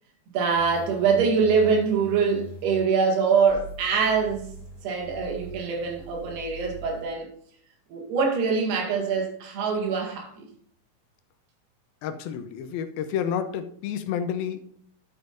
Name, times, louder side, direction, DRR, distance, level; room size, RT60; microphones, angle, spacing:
voice 1, 0.3-4.5 4.8-7.3 7.9-10.5, right 5 dB, 85° right, 4.0 m, -24 dB
sound 1, 0.5-2.8 3.5-7.0, right 3 dB, 25° left, 1.8 m, -43 dB
voice 2, 12.0-14.6, left 8 dB, 80° left, 2.5 m, -30 dB
11.5 x 7.1 x 2.6 m
omnidirectional pair, 4.5 m